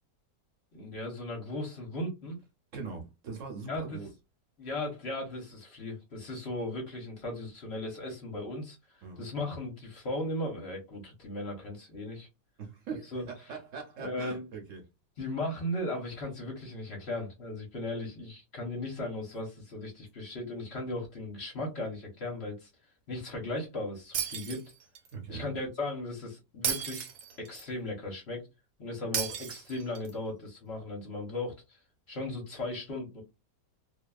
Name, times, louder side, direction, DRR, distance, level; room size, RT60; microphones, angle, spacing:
voice 1, 0.7-2.4 3.7-4.0 4.6-12.3 13.1-13.2 14.0-14.5 15.2-22.7 23.1-24.7 25.3-27.1 27.4-28.4 28.8-31.8 32.1-33.2, left 1 dB, 50° left, 0.9 m, -37 dB
voice 2, 2.7-4.1 9.0-9.3 12.6-14.8 25.1-25.5, right 5 dB, 55° right, 1.0 m, -41 dB
Shatter, 24.1-25.1 26.6-27.7 29.1-30.1, right 8 dB, 80° right, 1.3 m, -34 dB
2.7 x 2.3 x 2.2 m
omnidirectional pair, 1.9 m